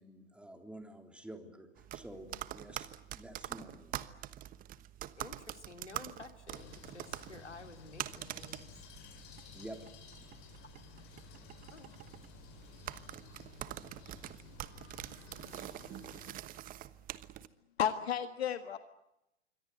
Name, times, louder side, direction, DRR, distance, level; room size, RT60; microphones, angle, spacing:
voice 1, 0.0-4.0 9.5-9.8 10.2-10.3, right 1 dB, 5° right, 5 dB, 3.6 m, -50 dB
sound 1, 1.8-17.5, right 13 dB, 25° right, 1.2 m, -45 dB
voice 2, 5.2-8.7 11.7-12.0, left 3 dB, 90° left, 6 dB, 3.3 m, -52 dB
sound 2, 6.5-16.3, left 7 dB, 40° left, 7.8 m, -55 dB
voice 3, 17.8-18.8, left 9 dB, 65° left, 9 dB, 1.7 m, -32 dB
27.0 x 24.0 x 8.0 m, 0.87 s
figure-of-eight pair, 105°, 34 cm